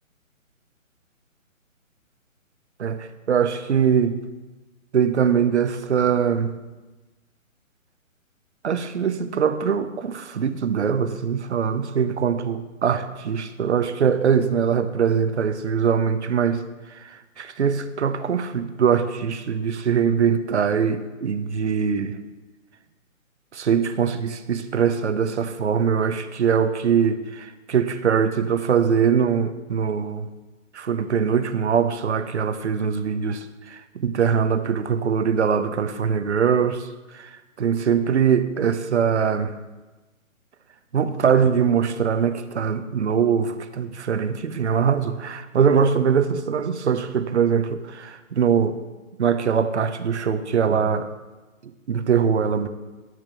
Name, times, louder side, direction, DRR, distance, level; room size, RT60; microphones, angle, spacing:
voice 1, 2.8-4.2 4.9-6.5 8.6-16.6 16.9-22.2 23.5-30.3 30.7-36.9 37.1-39.5 40.9-48.8 49.2-51.1 51.6-52.7, right 7 dB, 55° right, 11 dB, 0.8 m, -22 dB
12.5 x 5.2 x 6.1 m, 1.2 s
hypercardioid pair, 160°, 41 cm